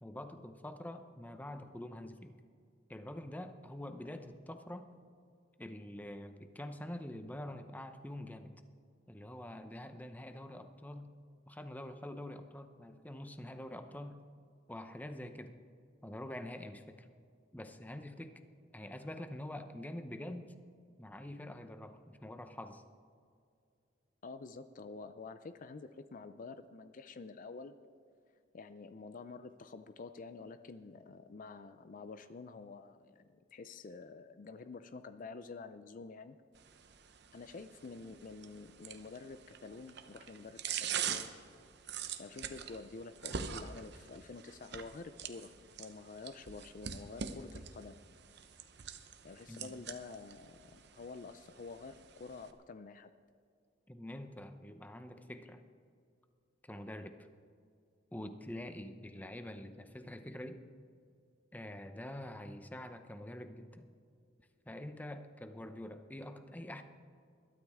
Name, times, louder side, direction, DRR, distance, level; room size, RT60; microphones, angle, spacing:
voice 1, 0.0-2.3 2.9-4.9 5.6-8.5 9.1-11.1 11.5-14.2 14.7-15.5 16.0-17.1 17.5-18.3 18.7-20.5 21.0-22.8 49.5-49.7 53.9-55.6 56.6-57.2 58.1-60.6 61.5-63.9 64.7-66.8, left 1 dB, 10° left, 8 dB, 0.7 m, -46 dB
voice 2, 24.2-27.7 28.5-36.4 37.3-41.3 42.2-48.2 49.2-53.1, left 4 dB, 45° left, 11 dB, 0.5 m, -49 dB
sound 1, 36.6-52.5, right 7 dB, 60° right, 0.9 m, -44 dB
21.0 x 12.5 x 3.6 m, 2.3 s
head